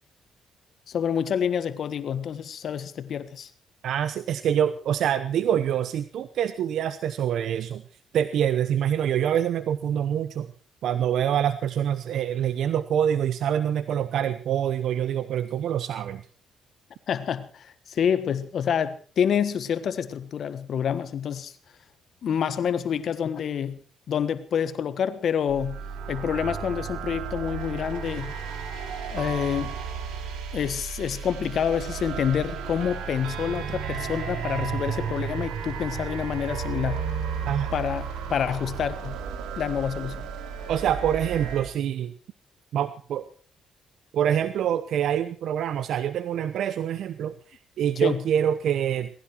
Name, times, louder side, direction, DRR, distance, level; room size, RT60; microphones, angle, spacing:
voice 1, 0.9-3.5 17.1-21.5 22.2-23.8 24.1-25.8 26.1-28.3 29.1-29.8 30.5-37.0 37.7-39.2 39.6-40.2 48.0-48.2, left 8 dB, 60° left, 13 dB, 1.4 m, -27 dB
voice 2, 3.8-7.8 8.1-10.5 10.8-16.2 37.5-37.7 40.7-42.1 42.7-43.3 44.1-49.1, right 9 dB, 75° right, 13 dB, 0.9 m, -25 dB
sound 1, 25.5-41.6, right 7 dB, 90° right, 3.8 m, -33 dB
19.5 x 16.0 x 4.6 m, 0.40 s
cardioid pair, 90°, 0 cm